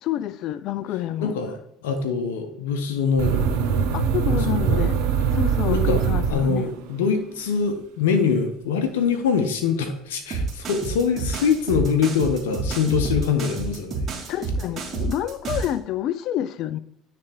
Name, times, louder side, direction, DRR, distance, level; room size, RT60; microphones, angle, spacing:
voice 1, 0.0-1.3 3.9-5.0 5.3-6.7 14.3-16.8, left 12 dB, 60° left, 0.4 m, -28 dB
voice 2, 1.2-3.9 4.3-4.8 5.7-6.0 6.3-14.0, left 6 dB, 85° left, 0.8 m, -24 dB
sound 1, 3.2-6.9, right 7 dB, 75° right, 0.8 m, -22 dB
sound 2, 10.3-15.8, right 3 dB, 50° right, 1.6 m, -29 dB
9.5 x 3.4 x 3.4 m
hypercardioid pair, 75°, 0 cm